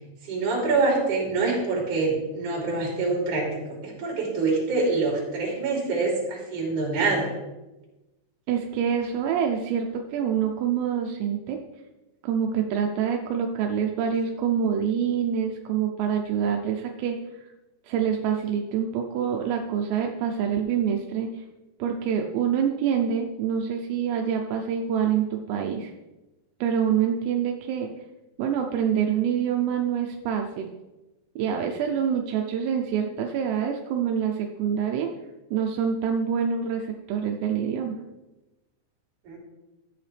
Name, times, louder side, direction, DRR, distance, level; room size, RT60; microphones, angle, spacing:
voice 1, 0.3-7.3 39.3-39.4, right 3 dB, 45° right, -3 dB, 4.1 m, -25 dB
voice 2, 8.5-11.6 12.2-17.5 17.8-21.4 21.8-25.9 26.6-27.9 28.4-30.7 31.4-35.1 35.5-38.0, right 8 dB, 80° right, 2 dB, 2.5 m, -26 dB
13.5 x 8.3 x 3.4 m, 1.0 s
omnidirectional pair, 5.6 m